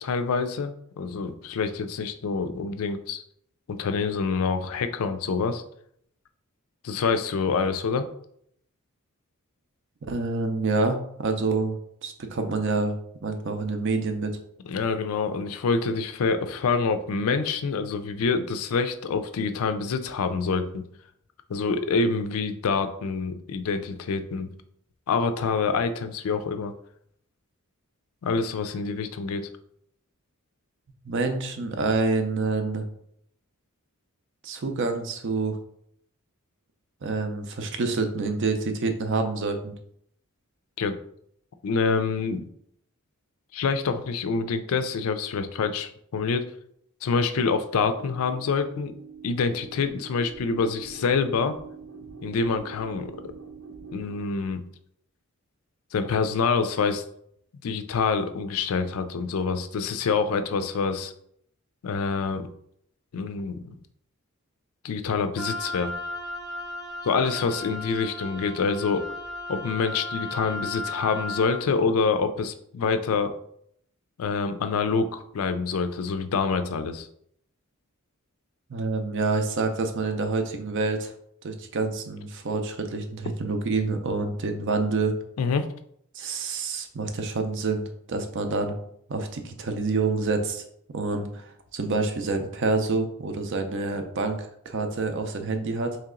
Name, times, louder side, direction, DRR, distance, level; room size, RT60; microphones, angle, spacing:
voice 1, 0.0-3.2 3.7-5.6 6.8-8.1 14.7-20.8 21.5-24.5 25.1-26.7 28.2-29.5 40.8-40.9 41.6-42.5 43.5-46.4 47.0-48.9 49.2-51.6 52.2-53.1 53.9-54.6 55.9-57.0 57.6-61.1 61.8-62.5 63.1-63.8 64.8-65.9 67.0-69.1 69.5-73.3 74.2-77.1 85.4-85.7, left 5 dB, 70° left, 9 dB, 0.4 m, -26 dB
voice 2, 10.1-13.0 13.2-14.3 31.0-32.9 34.4-35.6 37.0-39.7 78.7-81.1 81.4-85.2 86.1-88.7 89.1-90.6 90.9-96.0, right 3 dB, 55° right, 6 dB, 0.5 m, -27 dB
sound 1, 47.9-54.2, right 5 dB, 80° right, 0.9 m, -44 dB
Wind instrument woodwind instrument, 65.4-71.6, left 2 dB, ahead, 0.6 m, -35 dB
3.2 x 2.9 x 3.7 m, 0.69 s
head